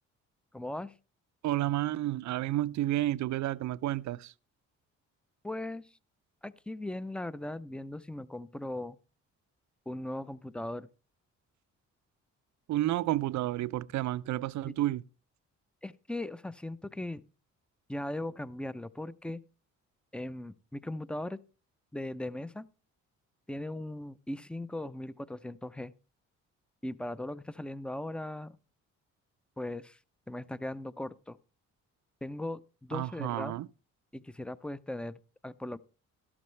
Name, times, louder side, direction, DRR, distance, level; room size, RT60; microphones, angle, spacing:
voice 1, 0.5-0.9 5.4-5.9 6.4-9.0 9.9-10.9 14.7-14.8 15.8-17.2 17.9-19.4 20.1-21.4 21.9-22.7 23.5-25.9 26.8-28.6 29.6-30.0 30.3-31.4 32.2-33.6 34.1-35.2 35.4-35.8, left 1 dB, 5° left, 0.5 m, -38 dB
voice 2, 1.4-4.3 12.7-15.0 32.9-33.7, right 15 dB, 70° right, 0.5 m, -31 dB
12.5 x 12.0 x 3.2 m
cardioid pair, 90°, 30 cm